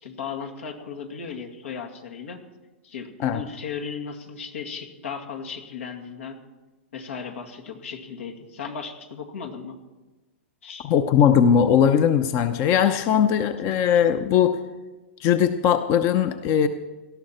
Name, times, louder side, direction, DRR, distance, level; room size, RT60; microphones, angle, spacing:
voice 1, 0.0-2.4 2.8-6.4 6.9-9.8 10.6-10.9, left 6 dB, 85° left, 3 dB, 2.1 m, -36 dB
voice 2, 10.8-14.6 15.2-16.7, left 8 dB, 35° left, 10 dB, 0.7 m, -19 dB
18.5 x 13.0 x 4.4 m, 1.2 s
hypercardioid pair, 130°, 7 cm